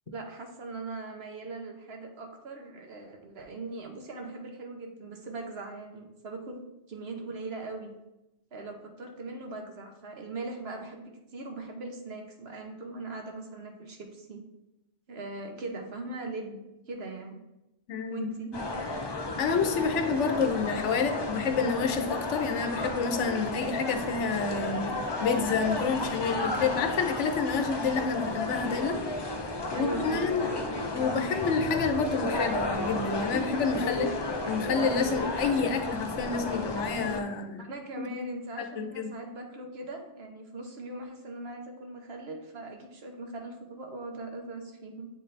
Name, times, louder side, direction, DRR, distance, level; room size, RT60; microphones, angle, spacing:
voice 1, 0.1-6.6 6.9-7.9 8.5-14.4 15.1-17.4 18.1-18.5 29.7-30.6 37.6-45.1, right 2 dB, 65° right, 3 dB, 1.1 m, -40 dB
voice 2, 17.9-18.6 19.4-29.0 29.7-30.5 30.9-34.1 34.5-37.6 38.0-38.1 38.6-39.1, left 5 dB, 85° left, 7 dB, 1.0 m, -29 dB
sound 1, 18.5-37.2, left 2 dB, 40° left, 0.3 m, -33 dB
7.9 x 4.0 x 3.2 m, 0.92 s
omnidirectional pair, 1.2 m